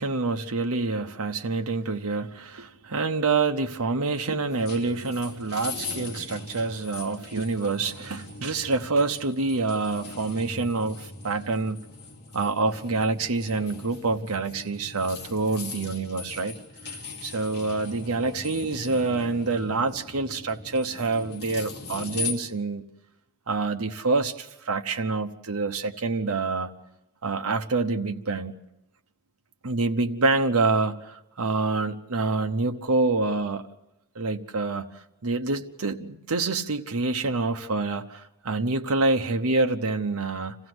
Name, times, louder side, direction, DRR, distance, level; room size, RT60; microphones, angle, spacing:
voice 1, 0.0-11.8 12.3-16.5 16.8-16.9 17.2-22.8 23.5-26.7 27.2-28.5 29.6-33.7 34.1-40.6, right 3 dB, 90° right, 5 dB, 1.0 m, -27 dB
sound 1, 4.5-22.3, left 4 dB, 50° left, 2.8 m, -40 dB
27.0 x 15.5 x 7.9 m, 0.95 s
head